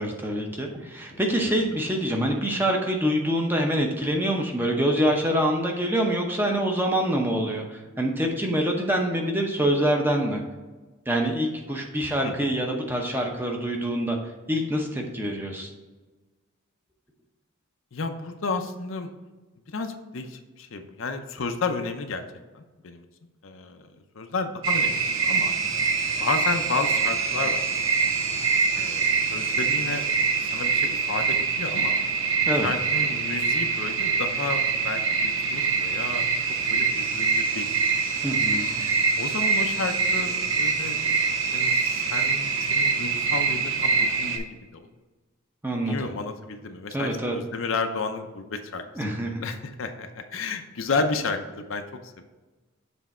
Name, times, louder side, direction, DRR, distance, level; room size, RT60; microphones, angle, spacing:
voice 1, 0.0-10.4 11.1-14.2 14.5-15.7 32.5-32.7 38.2-38.7 45.6-46.1 46.9-47.4 49.0-49.4, equal, 10° right, 1 dB, 0.7 m, -25 dB
voice 2, 1.1-1.6 12.2-12.5 17.9-19.1 19.7-22.2 22.5-23.1 23.4-23.8 24.1-25.5 26.2-27.6 28.0-28.1 28.7-30.1 30.4-32.0 32.4-36.3 36.7-37.7 38.3-38.4 39.2-41.0 41.5-44.8 45.8-49.0 49.4-51.8 52.2-52.3, left 4 dB, 70° left, 6 dB, 0.6 m, -32 dB
sound 1, 24.6-44.4, right 5 dB, 75° right, 0.8 m, -24 dB
7.2 x 3.4 x 4.2 m, 1.2 s
head